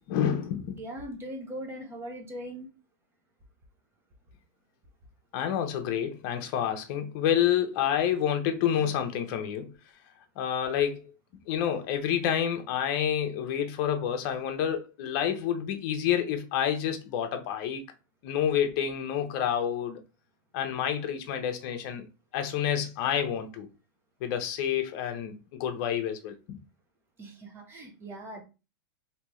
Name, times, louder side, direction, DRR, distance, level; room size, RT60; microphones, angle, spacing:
voice 1, 0.1-0.8 5.3-9.7 10.4-11.1 11.5-17.8 18.2-20.0 20.5-22.1 22.3-23.7 24.2-25.3 25.6-26.6, left 9 dB, 50° left, 0.8 m, -28 dB
voice 2, 0.8-2.7 27.2-28.4, right 1 dB, 20° right, 0.9 m, -40 dB
3.4 x 2.8 x 3.0 m
supercardioid pair, 135°, 12 cm